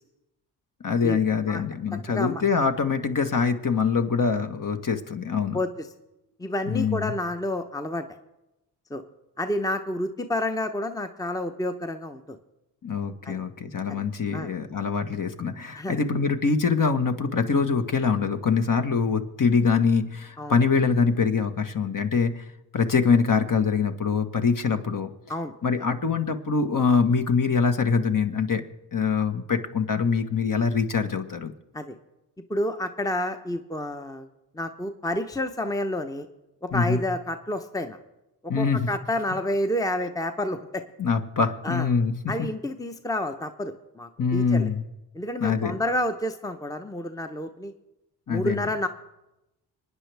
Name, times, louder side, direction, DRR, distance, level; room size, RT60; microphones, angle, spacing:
voice 1, 0.8-5.6 6.7-7.1 12.8-22.4 22.7-25.1 25.6-28.6 28.9-31.5 36.7-37.0 38.5-38.9 41.0-42.1 44.2-44.8 45.4-45.8 48.3-48.6, left 5 dB, 45° left, 6 dB, 1.4 m, -24 dB
voice 2, 2.1-2.4 5.5-5.7 6.4-8.1 8.9-9.0 9.4-12.4 13.2-13.4 14.3-14.5 15.8-16.0 20.4-20.6 25.3-25.5 31.7-32.0 32.5-34.3 34.5-36.3 36.6-38.0 38.6-40.8 41.6-41.9 42.3-44.7 45.1-47.7 48.3-48.9, left 1 dB, 10° left, 8 dB, 0.9 m, -29 dB
26.0 x 9.5 x 3.4 m, 0.96 s
supercardioid pair, 50°, 45 cm